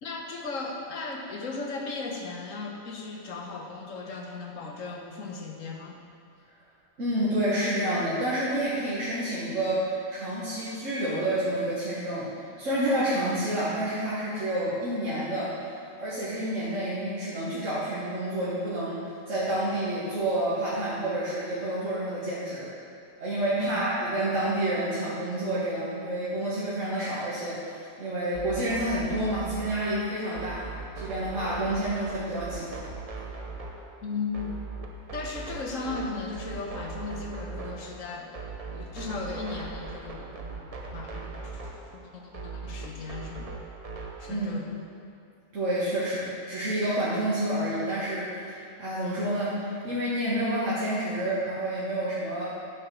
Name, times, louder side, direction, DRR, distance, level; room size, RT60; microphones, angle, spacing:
voice 1, 0.0-6.0 23.6-23.8 34.0-34.5 35.1-38.4 38.7-40.2 40.9-43.5 44.2-44.8, left 4 dB, 80° left, 1 dB, 1.4 m, -36 dB
voice 2, 7.0-15.5 16.0-22.7 23.2-30.6 31.0-32.7 44.3-44.5 45.5-52.5, right 1 dB, 70° right, -9 dB, 1.8 m, -29 dB
sound 1, 28.3-44.3, right 4 dB, 35° right, 0.7 m, -39 dB
9.5 x 5.0 x 6.0 m, 2.6 s
omnidirectional pair, 1.3 m